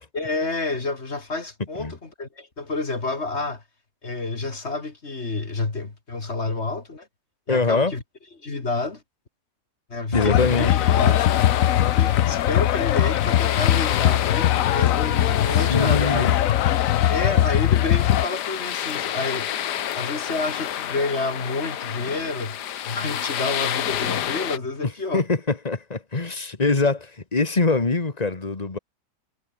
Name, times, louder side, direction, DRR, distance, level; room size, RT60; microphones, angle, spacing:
voice 1, 0.1-3.6 4.0-7.1 7.5-8.0 8.4-9.0 9.9-11.2 12.0-16.5 17.1-19.5 19.9-25.2, left 3 dB, 40° left, 2.7 m, -29 dB
voice 2, 7.5-7.9 10.1-10.7 15.6-16.3 25.1-28.8, left 3 dB, 25° left, 2.0 m, -23 dB
sound 1, 10.1-18.3, left 12 dB, 60° left, 1.0 m, -20 dB
sound 2, 10.4-24.6, left 10 dB, 80° left, 1.6 m, -30 dB
omnidirectional pair, 1.8 m